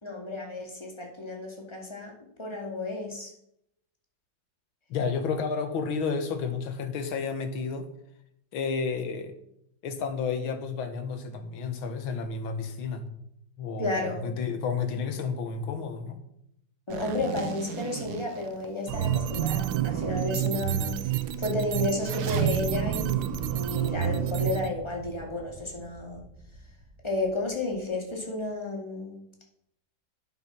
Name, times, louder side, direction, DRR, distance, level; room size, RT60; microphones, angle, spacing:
voice 1, 0.0-2.1 2.4-3.3 13.8-14.3 16.9-26.2 27.0-29.2, left 2 dB, 15° left, 0 dB, 2.3 m, -32 dB
voice 2, 4.9-7.9 8.5-9.3 9.8-13.1 13.6-16.2, left 5 dB, 80° left, 8 dB, 2.1 m, -31 dB
Zipper (clothing), 16.9-19.1 19.6-19.7 20.2-20.3 20.5-22.6, right 7 dB, 60° right, 1.2 m, -39 dB
sound 1, 18.9-24.7, right 11 dB, 75° right, 1.3 m, -28 dB
sound 2, 22.6-27.8 28.5-28.6, right 1 dB, 10° right, 1.3 m, -42 dB
11.0 x 7.9 x 6.0 m, 0.78 s
omnidirectional pair, 2.2 m